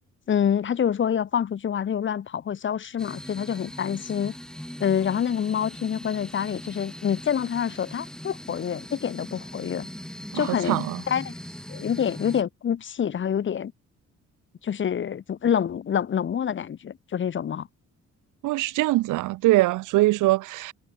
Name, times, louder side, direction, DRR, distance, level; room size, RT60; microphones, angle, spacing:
voice 1, 0.3-4.4 4.8-9.9 10.3-11.3 11.7-13.7 14.6-17.7, left 8 dB, 40° left, 0.8 m, -27 dB
sound 1, 3.0-12.4, equal, ahead, 1.2 m, -40 dB
voice 2, 10.3-11.0 18.4-20.7, right 18 dB, 85° right, 0.7 m, -22 dB
cardioid pair, 90°, 30 cm